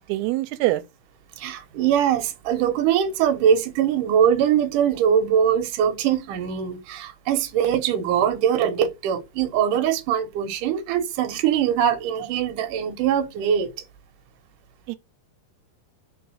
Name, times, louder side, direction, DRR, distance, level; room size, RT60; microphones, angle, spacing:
voice 1, 0.1-0.8 14.9-15.0, right 17 dB, 90° right, 2.7 m, -23 dB
voice 2, 1.4-13.7, right 9 dB, 65° right, 2.5 m, -22 dB
5.4 x 5.1 x 6.3 m
omnidirectional pair, 4.5 m